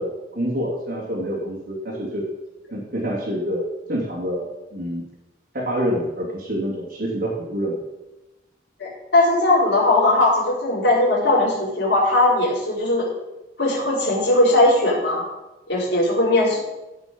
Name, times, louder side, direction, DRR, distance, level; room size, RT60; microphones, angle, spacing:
voice 1, 0.0-2.3 2.7-5.0 5.5-7.8, equal, 60° right, -7 dB, 2.8 m, -27 dB
voice 2, 8.8-13.0 13.6-15.2 15.7-16.6, left 2 dB, 65° left, -11 dB, 4.9 m, -19 dB
15.5 x 6.0 x 5.4 m, 1.0 s
head